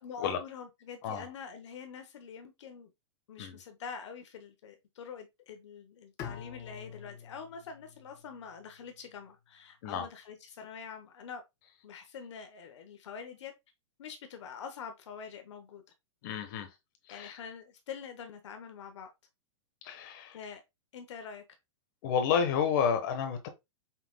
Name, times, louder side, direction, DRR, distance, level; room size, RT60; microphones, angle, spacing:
voice 1, 0.0-2.9 3.3-11.4 11.8-13.5 14.0-15.8 17.1-19.1 20.3-20.6 20.9-21.4, left 6 dB, 70° left, 0.9 m, -45 dB
Bowed string instrument, 6.2-9.2, left 8 dB, 20° left, 0.4 m, -47 dB
voice 2, 16.2-16.7 17.1-17.3 19.8-20.4 22.0-23.5, left 7 dB, 40° left, 1.1 m, -30 dB
5.7 x 3.8 x 2.2 m
supercardioid pair, 160°, 16 cm